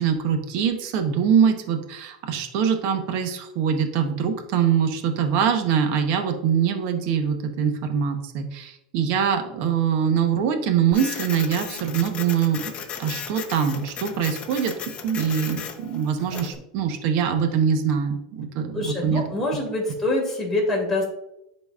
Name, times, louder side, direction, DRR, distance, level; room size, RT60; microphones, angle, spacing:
voice 1, 0.0-12.6 13.0-19.2, right 7 dB, 55° right, 6 dB, 0.9 m, -23 dB
Printer, 10.9-16.6, left 7 dB, 30° left, 0.7 m, -36 dB
voice 2, 18.7-21.1, left 2 dB, 10° left, -3 dB, 2.2 m, -25 dB
10.0 x 4.0 x 2.4 m, 0.86 s
supercardioid pair, 135°, 4 cm